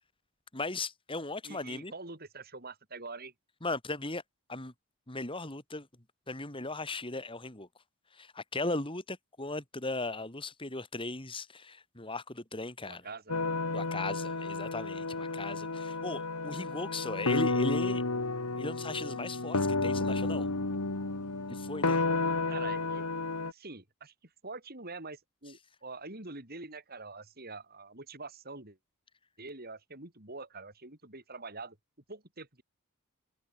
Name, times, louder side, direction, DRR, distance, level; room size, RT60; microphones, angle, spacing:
voice 1, 0.5-1.9 3.6-4.2 4.5-4.7 5.1-5.9 6.3-7.7 8.1-13.0 13.7-18.0 18.6-20.5 21.5-22.0, left 2 dB, 25° left, 3.2 m, -37 dB
voice 2, 1.4-3.3 12.9-13.3 22.5-23.1 23.4-24.1 24.4-28.8 29.4-31.8 32.1-32.6, right 3 dB, 45° right, 4.2 m, -45 dB
sound 1, 13.3-23.5, left 3 dB, 90° left, 2.2 m, -32 dB
head